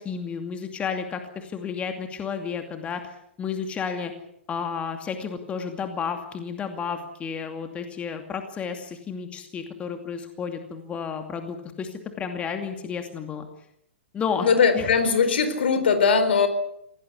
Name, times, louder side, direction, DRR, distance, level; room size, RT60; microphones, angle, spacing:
voice 1, 0.0-4.1 4.5-13.5 14.1-14.5 14.7-14.9, left 6 dB, 20° left, 6 dB, 2.6 m, -32 dB
voice 2, 14.4-16.5, left 5 dB, 60° left, 10 dB, 4.3 m, -20 dB
26.0 x 18.0 x 8.4 m, 0.76 s
figure-of-eight pair, 110°, 6 cm